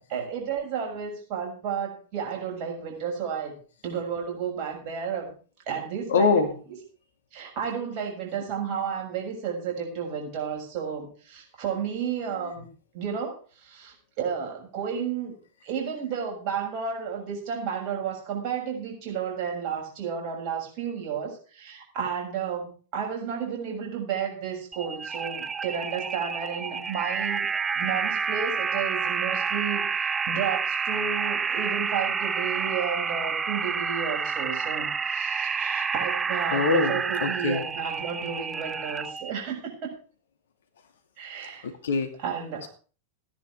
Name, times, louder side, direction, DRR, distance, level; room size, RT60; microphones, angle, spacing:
voice 1, 0.0-3.6 3.8-5.3 5.7-6.4 7.3-12.7 12.9-15.3 15.6-39.9 41.2-41.7 42.2-42.7, right 7 dB, 45° right, 0 dB, 6.7 m, -32 dB
voice 2, 6.1-6.5 36.5-37.6 41.6-42.1, left 4 dB, 65° left, 7 dB, 2.5 m, -24 dB
sound 1, 24.7-39.3, right 6 dB, 20° right, 0.6 m, -29 dB
16.5 x 10.0 x 4.8 m, 0.39 s
figure-of-eight pair, 90°, 0 cm